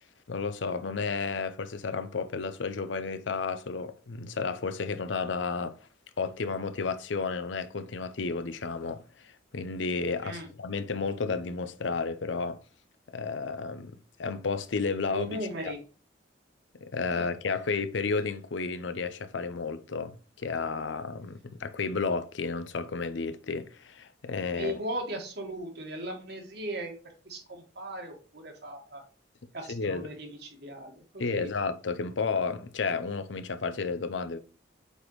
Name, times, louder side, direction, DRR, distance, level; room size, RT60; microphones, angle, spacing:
voice 1, 0.3-5.8 6.2-12.6 13.1-15.3 15.6-15.7 16.8-24.7 29.7-30.1 31.2-34.4, left 4 dB, 90° left, 0.6 m, -32 dB
voice 2, 15.1-15.8 17.2-17.3 24.5-26.9 27.2-29.0 29.5-31.5, right 1 dB, 65° right, 1.7 m, -37 dB
8.0 x 4.2 x 3.1 m
head